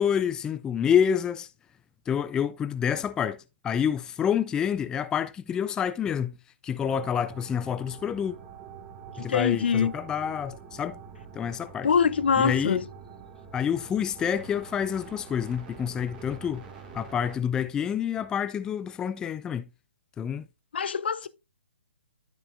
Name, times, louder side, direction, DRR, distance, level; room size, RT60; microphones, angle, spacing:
voice 1, 0.0-1.5 2.1-6.3 6.6-8.3 9.2-11.0 11.4-11.9 12.4-12.8 13.5-16.6 16.9-19.6 20.2-20.5, left 8 dB, 10° left, 0.4 m, -28 dB
sound 1, 6.8-17.4, right 6 dB, 15° right, 2.1 m, -46 dB
voice 2, 9.2-9.9 11.8-12.8 20.7-21.3, left 6 dB, 60° left, 0.7 m, -24 dB
12.0 x 5.4 x 2.5 m
figure-of-eight pair, 130°, 6 cm